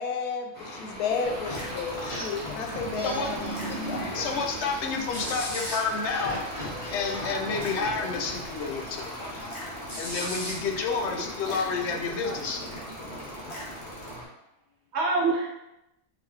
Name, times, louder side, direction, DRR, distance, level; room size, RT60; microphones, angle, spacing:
voice 1, 0.0-4.1, left 5 dB, 90° left, 4 dB, 1.1 m, -32 dB
sound 1, 0.5-14.3, left 1 dB, 45° left, 1.4 m, -39 dB
sound 2, 1.2-14.1, equal, 25° left, 0.8 m, -39 dB
voice 2, 2.8-4.1 14.9-15.5, right 3 dB, 65° right, -1 dB, 0.7 m, -29 dB
voice 3, 4.1-6.4 6.9-9.1 10.0-12.6, left 4 dB, 65° left, 2 dB, 0.7 m, -30 dB
3.9 x 2.6 x 3.1 m, 0.90 s
omnidirectional pair, 1.6 m